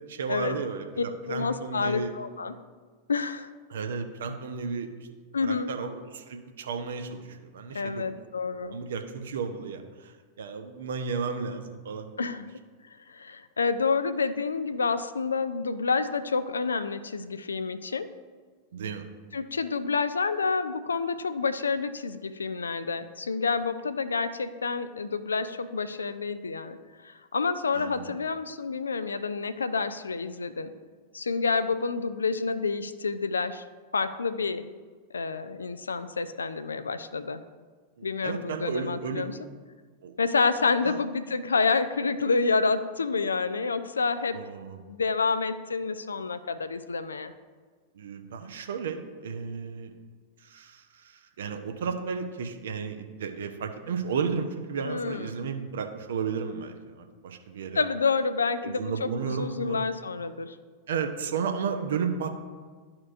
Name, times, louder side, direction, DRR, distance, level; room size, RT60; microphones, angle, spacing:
voice 1, 0.1-2.1 3.7-4.9 5.4-8.1 8.7-10.1 10.4-12.3 18.7-19.0 27.7-28.1 38.0-39.3 40.0-40.1 40.9-41.0 44.3-44.8 48.0-49.9 50.4-51.0 51.4-57.8 58.6-59.8 60.9-62.4, right 5 dB, 60° right, 6 dB, 0.6 m, -33 dB
voice 2, 1.0-2.5 3.1-3.5 5.3-5.7 7.7-8.8 12.2-12.5 13.1-18.1 19.3-26.8 27.0-30.7 31.1-33.6 33.9-34.7 35.1-37.4 38.0-39.4 40.2-44.4 44.9-47.3 54.8-55.5 57.7-60.6, left 4 dB, 75° left, 12 dB, 0.3 m, -28 dB
11.5 x 4.4 x 2.5 m, 1.5 s
figure-of-eight pair, 90°, 0 cm